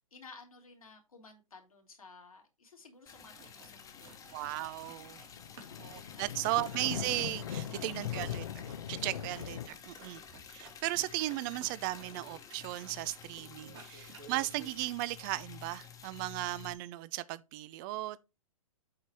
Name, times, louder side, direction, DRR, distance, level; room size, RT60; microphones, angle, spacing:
voice 1, 0.1-4.1 6.1-6.6 7.6-8.0 9.0-9.2 14.1-14.3, left 4 dB, 85° left, 2.7 m, -55 dB
sound 1, 2.8-2.9 3.1-3.7 4.0-5.3 5.5-13.3 13.6-14.8, right 5 dB, 55° right, 2.7 m, -56 dB
Liquid, 3.1-16.7, left 7 dB, 20° left, 1.2 m, -51 dB
sound 2, 3.5-9.7, left 9 dB, 65° left, 0.8 m, -41 dB
voice 2, 4.3-5.2 5.8-8.5 8.9-10.2 10.5-18.2, right 17 dB, 35° right, 0.6 m, -36 dB
7.8 x 4.1 x 4.7 m
hypercardioid pair, 120°, 18 cm